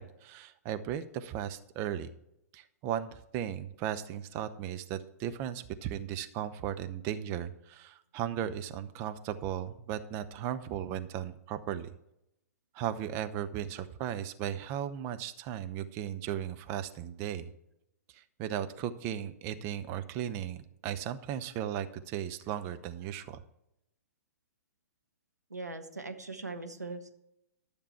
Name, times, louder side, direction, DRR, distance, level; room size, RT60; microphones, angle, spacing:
voice 1, 0.0-2.1 2.5-11.9 12.7-17.5 18.4-23.4, right 10 dB, 30° right, 10 dB, 0.7 m, -36 dB
voice 2, 25.5-27.1, right 3 dB, 85° right, 6 dB, 1.3 m, -40 dB
12.5 x 6.9 x 4.5 m, 0.83 s
figure-of-eight pair, 115°, 9 cm